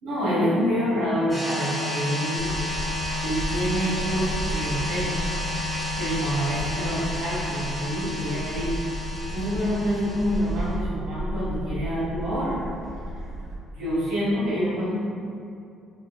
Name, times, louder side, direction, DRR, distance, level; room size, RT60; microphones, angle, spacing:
voice 1, 0.0-2.5 3.2-5.2 6.0-8.8 9.3-12.6 13.7-14.9, equal, 85° right, -8 dB, 1.2 m, -27 dB
sound 1, 1.3-10.7, left 1 dB, 10° left, 1.0 m, -31 dB
Gull seagull, 2.4-13.6, right 1 dB, 40° right, 1.1 m, -34 dB
4.6 x 2.6 x 2.2 m, 2.5 s
cardioid pair, 175°, 0 cm